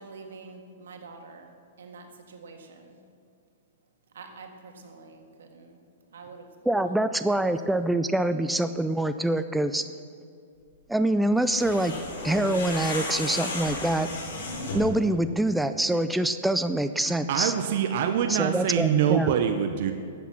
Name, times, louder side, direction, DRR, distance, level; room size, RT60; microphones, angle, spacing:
voice 1, 0.0-1.5 1.8-3.0 4.1-5.8 6.1-6.5 7.2-7.4, right 4 dB, 85° right, 3 dB, 1.7 m, -46 dB
voice 2, 6.7-9.9 10.9-12.0 12.2-14.1 14.7-17.5 18.3-19.3, right 1 dB, 5° right, 10 dB, 0.3 m, -25 dB
sound 1, 11.4-15.0, left 2 dB, 75° left, 3.5 m, -33 dB
voice 3, 17.0-19.9, right 9 dB, 55° right, 6 dB, 0.7 m, -25 dB
12.5 x 8.2 x 5.9 m, 2.4 s
hypercardioid pair, 145°, 0 cm